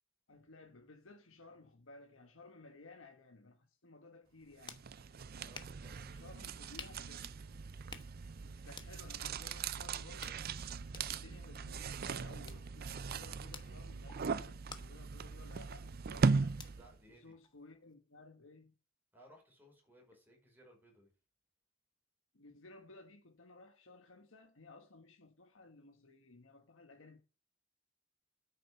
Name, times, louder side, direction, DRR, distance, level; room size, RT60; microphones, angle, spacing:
voice 1, 0.3-4.8 6.0-7.4 8.4-10.4 10.9-16.6 17.1-18.7 22.3-27.2, left 2 dB, 65° left, 1.4 m, -57 dB
sound 1, 4.2-17.9, left 5 dB, 20° left, 1.1 m, -57 dB
sound 2, 4.6-17.0, right 4 dB, 45° right, 0.5 m, -39 dB
voice 2, 5.4-6.2 16.7-17.3 19.1-21.1, equal, 10° right, 5.0 m, -62 dB
9.0 x 6.6 x 7.6 m
head